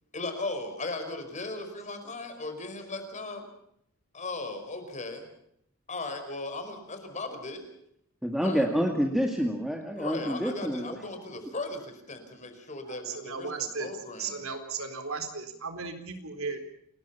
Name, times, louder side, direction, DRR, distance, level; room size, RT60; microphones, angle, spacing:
voice 1, 0.1-3.5 4.1-5.3 5.9-7.6 8.4-8.6 10.0-14.4, left 2 dB, 35° left, 7 dB, 5.1 m, -37 dB
voice 2, 8.2-11.0, equal, ahead, 2 dB, 2.1 m, -28 dB
voice 3, 12.9-13.9 14.2-16.6, right 5 dB, 75° right, 7 dB, 4.1 m, -35 dB
29.0 x 20.5 x 5.7 m, 0.73 s
head